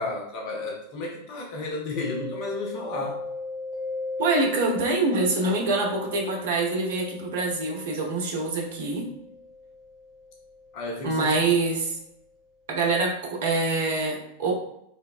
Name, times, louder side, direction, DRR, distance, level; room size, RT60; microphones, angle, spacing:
voice 1, 0.0-3.2 10.7-11.4, left 2 dB, 45° left, -1 dB, 0.5 m, -32 dB
Mallet percussion, 2.0-11.5, left 3 dB, 15° right, 0.7 m, -38 dB
voice 2, 4.2-9.0 11.0-11.9 12.7-14.5, right 3 dB, 55° right, 0 dB, 0.6 m, -25 dB
3.3 x 2.0 x 2.3 m, 0.77 s
figure-of-eight pair, 90°, 0 cm